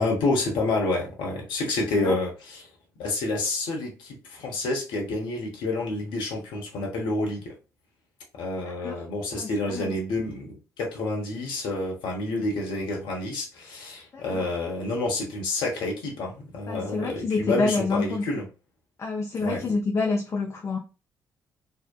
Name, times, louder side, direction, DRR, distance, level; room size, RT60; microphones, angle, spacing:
voice 1, 0.0-2.7 3.0-7.5 8.3-18.4 19.4-19.6, left 2 dB, 65° left, 0.8 m, -29 dB
voice 2, 9.3-9.9 14.1-14.4 16.7-18.2 19.0-20.8, left 3 dB, 35° left, 0.5 m, -28 dB
2.7 x 2.1 x 2.2 m
figure-of-eight pair, 45°, 9 cm